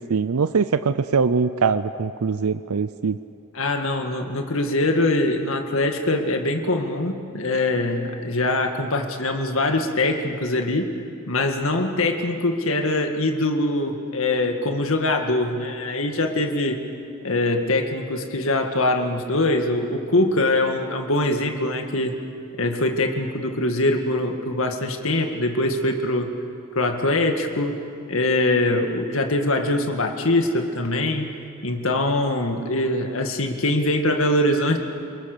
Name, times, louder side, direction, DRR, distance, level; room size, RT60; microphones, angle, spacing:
voice 1, 0.1-3.2, right 5 dB, 85° right, 12 dB, 0.6 m, -22 dB
voice 2, 3.5-10.9 11.3-16.8 17.2-22.2 22.6-26.3 26.7-27.8 28.1-31.3 31.6-34.8, left 2 dB, 65° left, 4 dB, 2.0 m, -23 dB
28.5 x 21.0 x 6.8 m, 2.5 s
head